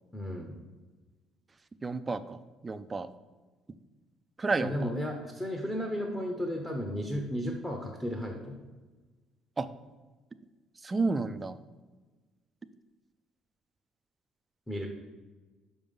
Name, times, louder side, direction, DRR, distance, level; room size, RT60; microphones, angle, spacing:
voice 1, 0.1-0.6 4.6-8.6 14.7-14.9, equal, 10° left, 2 dB, 0.7 m, -34 dB
voice 2, 1.8-3.1 4.4-4.9 9.6-9.7 10.8-11.6, right 3 dB, 15° right, 11 dB, 0.3 m, -31 dB
5.9 x 5.2 x 5.3 m, 1.3 s
cardioid pair, 150°, 0 cm